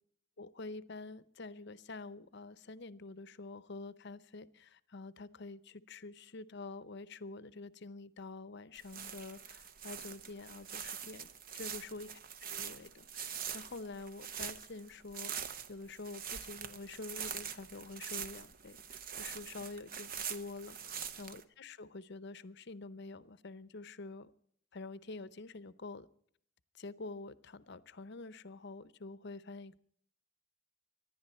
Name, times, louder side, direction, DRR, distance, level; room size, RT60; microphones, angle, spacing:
voice 1, 0.4-12.2 12.5-15.3 15.7-24.3 24.7-26.1 26.8-29.8, left 3 dB, 55° left, 15 dB, 0.7 m, -47 dB
sound 1, 8.8-21.4, right 8 dB, 45° right, 0.9 m, -44 dB
24.5 x 11.5 x 4.3 m, 0.63 s
head